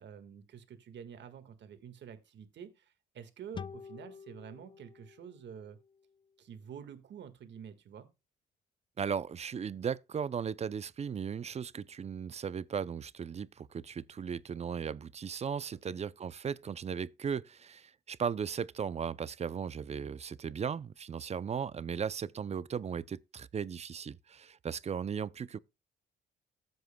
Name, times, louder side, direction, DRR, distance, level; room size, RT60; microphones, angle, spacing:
voice 1, 0.0-5.8 6.4-8.1 15.8-16.0, right 8 dB, 65° right, 1.7 m, -49 dB
sound 1, 3.5-6.9, left 6 dB, 25° left, 0.4 m, -49 dB
voice 2, 9.0-25.6, right 7 dB, 35° right, 0.5 m, -37 dB
15.0 x 8.0 x 2.2 m
cardioid pair, 90°, 20 cm